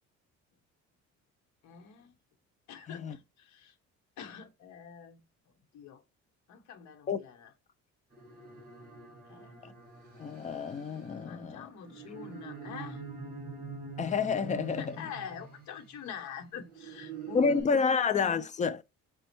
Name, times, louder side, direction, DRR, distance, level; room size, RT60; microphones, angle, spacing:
voice 1, 1.6-2.1 2.7-3.8 4.2-5.2 5.7-6.0 6.5-7.5 9.3-9.7 11.2-13.0 14.7-18.0, left 8 dB, 70° left, 1.0 m, -45 dB
sound 1, 8.1-16.0 16.6-17.6, right 5 dB, 30° right, 1.5 m, -44 dB
voice 2, 10.2-11.6 14.0-15.1 17.3-18.8, left 5 dB, 25° left, 0.4 m, -29 dB
5.0 x 2.3 x 4.4 m
cardioid pair, 120°, 29 cm